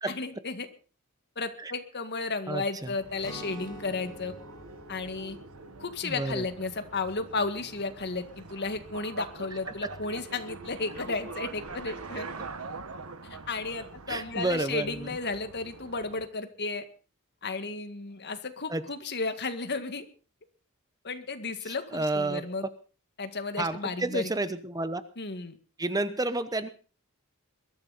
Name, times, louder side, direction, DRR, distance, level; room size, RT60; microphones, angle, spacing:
voice 1, 0.1-0.7 1.4-4.3 4.9-5.4 5.8-12.3 13.5-16.9 17.4-20.1 21.0-22.7 23.2-24.3 25.2-25.6, left 3 dB, 50° left, 9 dB, 1.9 m, -33 dB
voice 2, 2.5-2.9 6.0-6.5 9.8-9.9 12.4-12.5 14.1-15.1 18.7-18.8 21.7-22.7 23.6-25.0 25.8-26.7, right 2 dB, 15° right, 12 dB, 0.9 m, -31 dB
sound 1, 2.9-16.3, right 4 dB, 85° right, 1.4 m, -44 dB
Guitar, 3.2-9.0, equal, 20° left, 6.0 m, -48 dB
21.5 x 13.0 x 4.1 m, 0.37 s
head